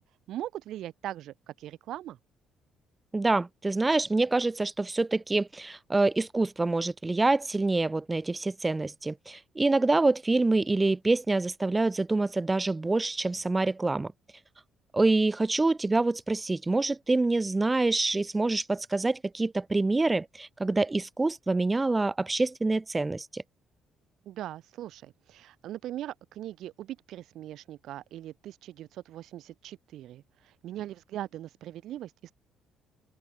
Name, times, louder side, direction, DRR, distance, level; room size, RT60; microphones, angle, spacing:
voice 1, 0.3-2.2 24.3-32.3, right 13 dB, 70° right, 3.6 m, -40 dB
voice 2, 3.1-14.1 14.9-23.4, right 2 dB, 15° right, 0.5 m, -26 dB
open air
cardioid pair, 135°, 0 cm